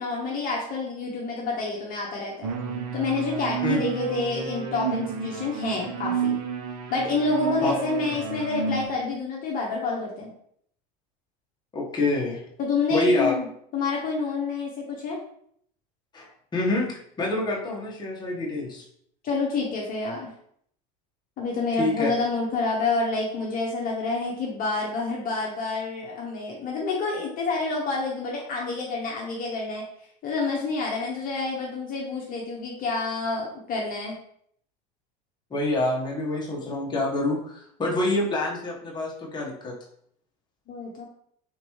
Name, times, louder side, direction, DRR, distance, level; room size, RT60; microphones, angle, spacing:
voice 1, 0.0-2.5 2.9-6.4 6.9-10.3 12.6-13.5 13.7-15.2 19.2-20.3 21.4-29.8 30.2-34.1 40.7-41.1, left 3 dB, 40° left, -2 dB, 0.9 m, -28 dB
sound 1, 2.4-8.9, right 6 dB, 75° right, 0.7 m, -31 dB
voice 2, 11.7-12.4 12.9-13.3 16.1-18.8 21.8-22.1 35.5-39.7, left 2 dB, 20° left, -2 dB, 1.1 m, -26 dB
3.6 x 2.9 x 3.0 m, 0.66 s
supercardioid pair, 110°, 21 cm